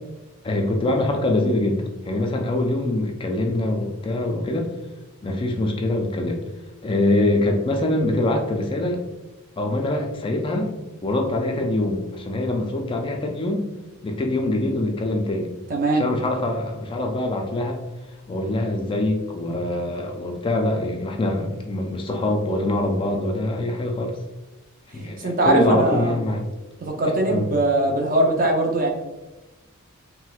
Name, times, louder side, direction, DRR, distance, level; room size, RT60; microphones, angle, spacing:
voice 1, 0.4-4.7 5.2-6.4 6.8-9.0 9.6-10.7 11.0-13.7 14.0-15.5 15.9-17.8 18.3-24.1 24.9-26.5 27.0-27.5, left 1 dB, 25° left, 3 dB, 0.3 m, -24 dB
voice 2, 15.7-16.0 25.2-26.1 26.8-28.9, right 2 dB, 40° right, 1 dB, 0.6 m, -20 dB
4.1 x 2.1 x 2.3 m, 1.1 s
head